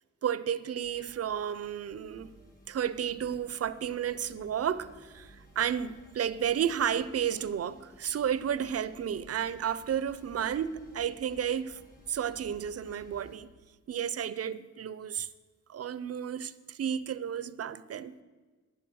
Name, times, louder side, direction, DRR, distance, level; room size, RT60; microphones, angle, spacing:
voice 1, 0.2-2.3 2.7-11.8 12.1-13.5 13.9-15.3 15.7-18.2, right 9 dB, 55° right, 0.5 m, -32 dB
sound 1, 0.8-13.4, equal, 30° left, 2.3 m, -56 dB
10.5 x 7.7 x 7.7 m
wide cardioid pair, 140°, 30 cm